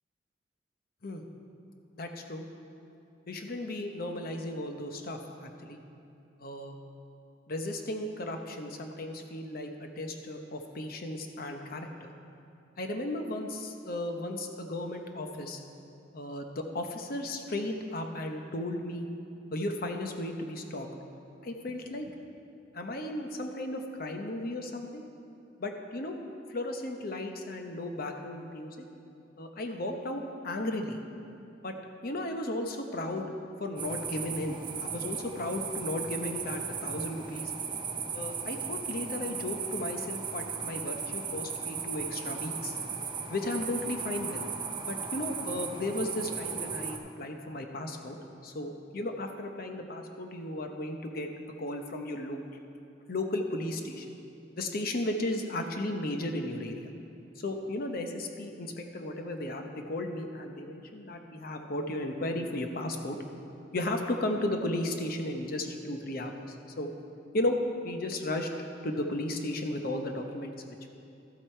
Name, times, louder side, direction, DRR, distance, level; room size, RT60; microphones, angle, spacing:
voice 1, 1.9-2.4 3.3-5.8 6.4-6.8 7.5-12.1 12.8-15.6 16.1-19.1 19.5-20.9 21.4-22.1 22.7-25.0 25.6-26.2 26.5-28.8 29.4-31.0 31.6-31.8 32.0-33.3 33.6-37.5 38.1-42.8 43.3-44.4 44.9-48.2 48.4-51.3 51.6-52.4 53.1-54.1 54.5-56.9 57.4-63.2 63.7-66.9 67.3-67.6 67.8-68.5 68.8-70.9, left 1 dB, 55° left, 4 dB, 0.9 m, -35 dB
sound 1, 33.8-47.0, right 6 dB, 25° right, 0.7 m, -36 dB
12.5 x 7.9 x 4.4 m, 2.8 s
head